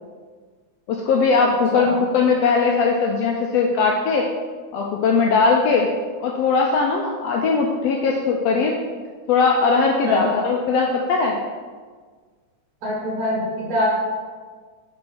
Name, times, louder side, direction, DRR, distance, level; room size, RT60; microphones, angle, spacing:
voice 1, 0.9-4.3 4.7-5.9 6.2-8.8 9.3-11.4, left 4 dB, 80° left, 0 dB, 1.5 m, -19 dB
voice 2, 1.7-2.0 10.0-10.3 12.8-13.9, left 1 dB, 50° right, -5 dB, 2.3 m, -24 dB
5.3 x 4.6 x 5.8 m, 1.5 s
omnidirectional pair, 3.4 m